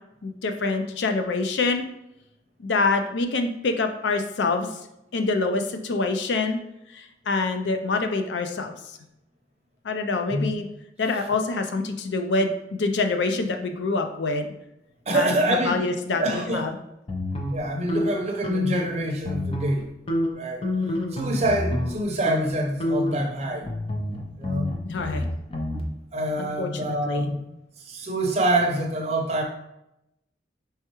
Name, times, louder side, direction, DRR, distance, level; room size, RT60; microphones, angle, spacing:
voice 1, 0.2-1.8 2.6-4.8 5.1-6.6 6.9-9.0 9.8-10.6 11.0-14.5 15.1-16.7 24.8-25.2 26.4-27.3, left 3 dB, 85° left, 6 dB, 0.5 m, -26 dB
voice 2, 15.1-15.8 16.2-16.7 17.5-19.9 20.3-20.6 21.1-23.7 24.4-24.7 26.1-27.4 27.8-29.4, right 1 dB, 40° right, 1 dB, 0.7 m, -26 dB
sound 1, 17.1-18.9 19.2-19.8 20.1-22.0 22.3-22.5 22.8-25.8, left 1 dB, 30° left, 0.6 m, -28 dB
4.4 x 3.5 x 3.0 m, 0.84 s
head